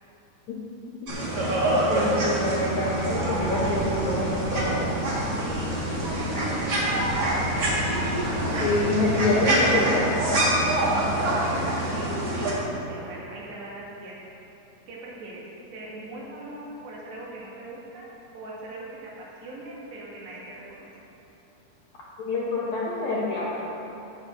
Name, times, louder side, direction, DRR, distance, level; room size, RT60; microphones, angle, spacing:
sound 1, 1.1-12.5, right 1 dB, 50° right, 1.2 m, -25 dB
voice 1, 1.9-5.0 8.6-10.3 22.3-23.6, left 2 dB, 75° left, -6 dB, 1.7 m, -26 dB
voice 2, 5.4-7.7 10.8-12.5 12.9-14.2 14.9-15.4 15.7-20.9, right 2 dB, 85° right, -6 dB, 4.3 m, -40 dB
16.0 x 7.2 x 3.8 m, 2.9 s
omnidirectional pair, 4.8 m